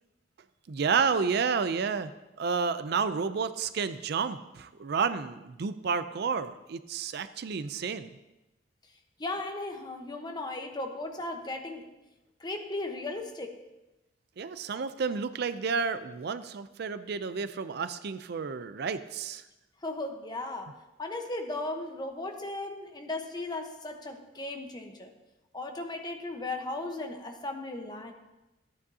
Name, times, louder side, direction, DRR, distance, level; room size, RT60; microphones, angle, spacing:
voice 1, 0.7-2.1 2.4-8.1 14.4-19.4, right 5 dB, 60° right, 13 dB, 0.4 m, -30 dB
voice 2, 9.2-11.9 12.4-13.6 19.8-25.1 25.5-28.1, left 2 dB, 25° left, 4 dB, 1.0 m, -36 dB
14.5 x 9.5 x 2.8 m, 0.98 s
head